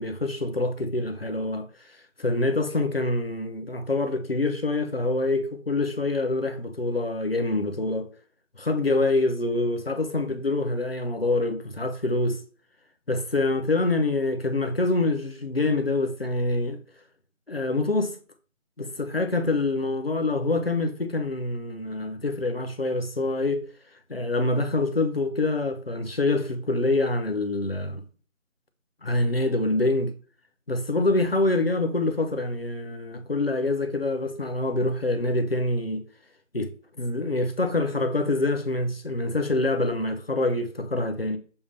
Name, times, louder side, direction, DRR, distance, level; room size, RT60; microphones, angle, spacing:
voice 1, 0.0-1.7 2.2-8.1 8.6-12.4 13.1-16.8 17.5-18.1 18.8-23.6 24.1-28.0 29.0-30.1 30.7-36.0 36.5-36.7 37.0-41.4, left 2 dB, 50° left, 1.0 m, -25 dB
7.2 x 2.8 x 5.2 m
figure-of-eight pair, 170°, 39 cm